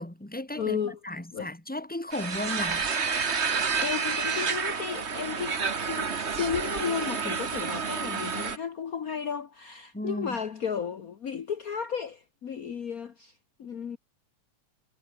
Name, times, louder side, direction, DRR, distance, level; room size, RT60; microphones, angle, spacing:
voice 1, 0.0-2.9 9.9-10.4, left 1 dB, 5° left, 2.2 m, -35 dB
voice 2, 0.5-1.0 1.3-1.5 3.8-14.0, left 7 dB, 60° left, 0.9 m, -34 dB
sound 1, 2.1-8.6, right 5 dB, 40° right, 1.0 m, -29 dB
omnidirectional pair, 3.4 m